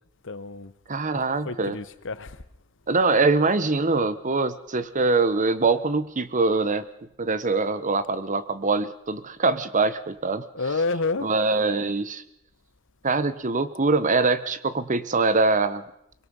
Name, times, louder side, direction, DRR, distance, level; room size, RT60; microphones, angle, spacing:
voice 1, 0.2-0.7 1.1-2.4 10.5-11.3, left 3 dB, 60° left, 1.1 m, -29 dB
voice 2, 0.9-1.8 2.9-6.8 7.2-10.4 11.2-12.2 13.0-15.8, right 3 dB, 35° right, 1.0 m, -23 dB
24.0 x 23.0 x 5.5 m
head